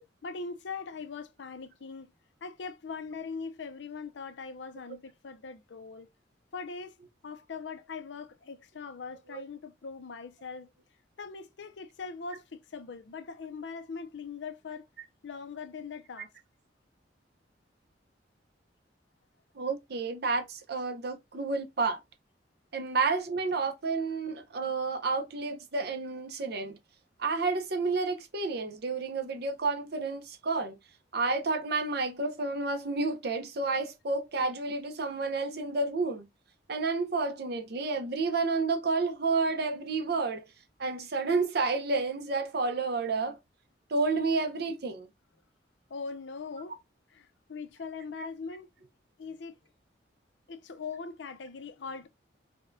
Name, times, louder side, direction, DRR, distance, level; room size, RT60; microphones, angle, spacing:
voice 1, 0.2-2.1 2.4-6.1 6.5-7.0 7.2-10.7 11.2-14.9 15.2-16.3 45.9-46.8 47.1-48.7 49.2-49.5 50.5-52.1, left 5 dB, 70° left, 0.5 m, -41 dB
voice 2, 19.6-22.0 22.7-26.8 27.2-30.8 31.1-36.3 36.7-40.5 40.8-43.4 43.9-45.1 48.2-48.3, right 3 dB, 60° right, 0.7 m, -30 dB
4.1 x 2.2 x 2.5 m
head